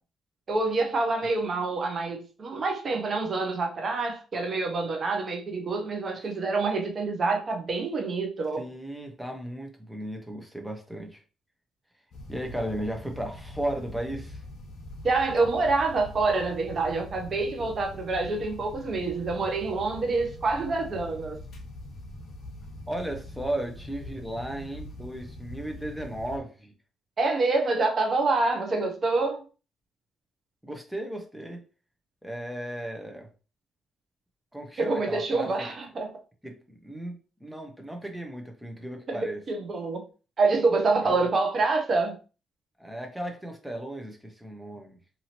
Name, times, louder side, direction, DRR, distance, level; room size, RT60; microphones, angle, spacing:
voice 1, 0.5-8.6 15.0-21.4 27.2-29.4 34.8-36.1 39.1-40.0 40.4-42.1, right 3 dB, 45° right, 0.7 m, -26 dB
voice 2, 8.6-11.2 12.3-14.4 22.9-26.7 30.6-31.6 32.2-33.3 34.5-35.5 36.4-39.4 41.1-41.2 42.8-45.0, right 1 dB, 5° right, 0.8 m, -35 dB
sound 1, 12.1-26.4, left 1 dB, 60° left, 0.8 m, -43 dB
2.8 x 2.7 x 2.9 m
cardioid pair, 90°, 0 cm